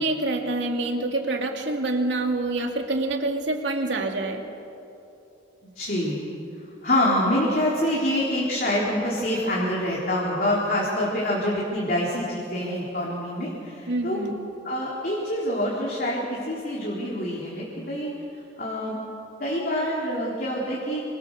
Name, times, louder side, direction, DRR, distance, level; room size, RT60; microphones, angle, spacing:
voice 1, 0.0-4.4 13.9-14.4, right 2 dB, 70° right, 2 dB, 2.7 m, -26 dB
voice 2, 5.6-6.2 6.8-14.2 14.6-19.0 19.4-21.0, left 1 dB, 45° left, -4 dB, 4.1 m, -26 dB
29.0 x 24.0 x 6.8 m, 2.7 s
head